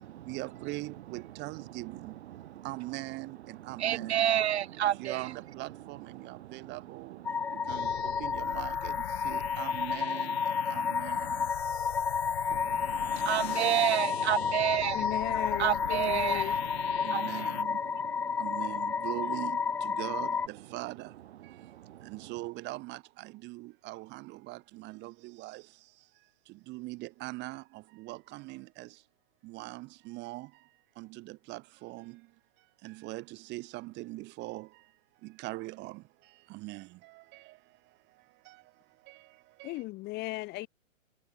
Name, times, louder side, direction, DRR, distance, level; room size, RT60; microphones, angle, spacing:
voice 1, 0.3-2.2 2.6-4.4 5.0-7.2 7.7-7.9 8.2-8.9 9.2-10.4 10.7-11.4 17.0-17.8 18.4-21.1 22.1-25.6 26.7-27.6 28.0-28.9 29.4-30.5 31.0-32.1 32.8-34.7 35.2-36.0 36.5-36.9 39.6-39.7, right 21 dB, 25° right, 2.6 m, -41 dB
voice 2, 3.8-5.2 7.4-7.7 12.5-12.8 13.3-15.1 15.6-16.6 16.9-17.2 18.3-18.4 21.7-22.0, right 12 dB, 55° right, 0.8 m, -29 dB
sound 1, 7.2-20.5, left 6 dB, 5° left, 0.5 m, -31 dB
sound 2, 7.7-17.6, left 13 dB, 50° left, 7.4 m, -42 dB
voice 3, 14.9-16.6 39.6-40.7, left 20 dB, 25° left, 2.0 m, -36 dB
hypercardioid pair, 140°, 40 cm